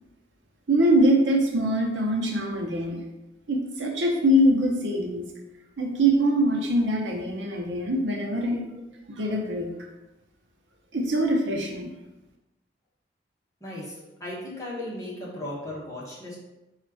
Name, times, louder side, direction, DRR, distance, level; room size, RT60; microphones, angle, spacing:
voice 1, 0.7-3.0 3.5-5.3 5.8-8.6 9.1-9.7 10.9-11.9, right 1 dB, 75° right, 1 dB, 0.7 m, -23 dB
voice 2, 13.6-16.4, left 1 dB, 15° left, -6 dB, 1.0 m, -36 dB
4.1 x 2.4 x 4.7 m, 1.0 s
head